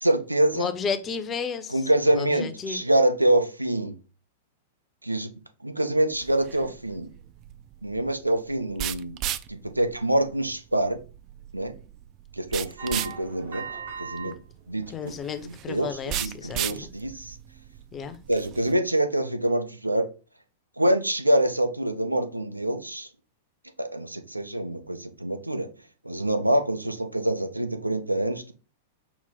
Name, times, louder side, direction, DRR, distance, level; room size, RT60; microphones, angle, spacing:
voice 1, 0.0-0.7 1.7-3.9 5.0-5.3 5.6-7.1 7.8-9.2 9.5-11.0 11.5-11.7 12.4-13.7 14.0-14.4 14.7-15.1 15.4-15.9 16.2-17.4 18.3-20.0 20.8-23.1 23.8-25.7 26.0-28.5, right 1 dB, 85° right, 0.5 m, -25 dB
voice 2, 0.5-1.8 2.1-2.8 14.2-14.4 14.9-16.9 17.9-18.2, left 6 dB, 25° left, 0.6 m, -32 dB
sound 1, 6.1-18.7, right 12 dB, 35° right, 0.3 m, -36 dB
sound 2, 12.8-14.3 14.7-15.3 15.7-16.0 16.4-16.5, right 6 dB, 65° right, 1.0 m, -39 dB
5.9 x 2.0 x 4.0 m
figure-of-eight pair, 95°, 0 cm